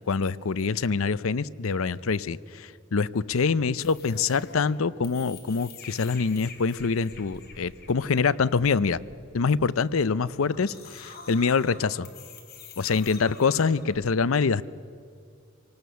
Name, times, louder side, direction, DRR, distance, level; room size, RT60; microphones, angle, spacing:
voice 1, 0.1-9.0 9.3-12.1 12.8-14.6, left 5 dB, 85° left, 18 dB, 0.6 m, -25 dB
sound 1, 3.8-14.1, left 4 dB, 50° left, 3.3 m, -47 dB
26.5 x 19.0 x 6.9 m, 2.4 s
head